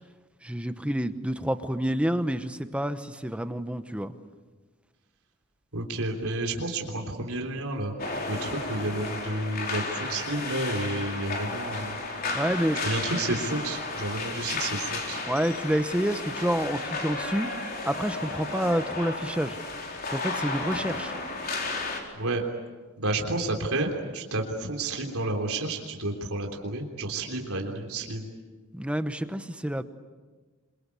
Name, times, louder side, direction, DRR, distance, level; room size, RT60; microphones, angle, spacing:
voice 1, 0.4-4.1 12.3-12.8 15.3-17.5 17.8-19.6 20.1-21.1 28.7-29.8, equal, 5° right, 10 dB, 1.0 m, -28 dB
voice 2, 5.7-7.9 8.3-12.0 12.8-15.2 22.1-22.4 23.0-28.3, right 2 dB, 80° right, 2 dB, 3.4 m, -30 dB
sound 1, 8.0-22.0, left 3 dB, 40° left, 4.2 m, -33 dB
27.0 x 24.0 x 8.4 m, 1.4 s
head